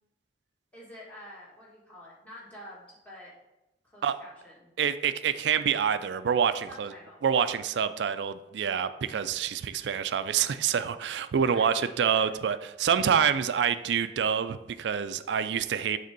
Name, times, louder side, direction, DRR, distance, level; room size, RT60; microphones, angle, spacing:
voice 1, 0.7-3.3 3.8-4.7 6.7-7.2 11.4-12.3, left 1 dB, 10° left, -7 dB, 1.8 m, -48 dB
voice 2, 4.8-6.9 7.2-16.0, right 7 dB, 85° right, 12 dB, 0.4 m, -27 dB
6.6 x 3.4 x 5.2 m, 0.96 s
head